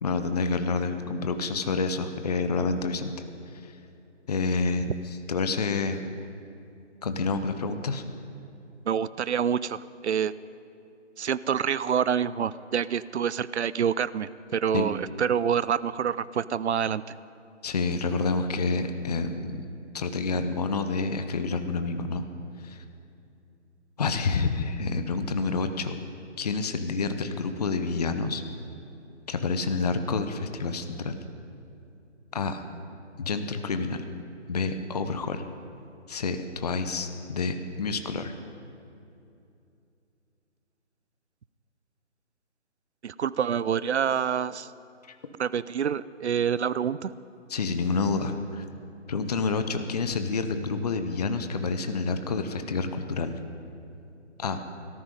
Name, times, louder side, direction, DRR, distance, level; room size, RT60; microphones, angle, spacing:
voice 1, 0.0-3.1 3.6-3.7 4.3-6.0 7.0-8.0 14.7-14.9 17.6-19.6 19.9-22.2 22.6-22.8 24.0-25.9 26.4-28.4 29.3-31.2 32.3-32.6 33.2-34.0 34.5-35.4 36.1-38.3 45.1-45.2 47.5-48.7 49.1-53.4 54.4-54.6, left 4 dB, 35° left, 8 dB, 0.7 m, -28 dB
voice 2, 8.9-10.3 11.2-17.0 43.0-44.7 45.4-47.1, right 8 dB, 65° right, 18 dB, 0.5 m, -27 dB
18.0 x 13.5 x 5.3 m, 2.7 s
figure-of-eight pair, 155°, 36 cm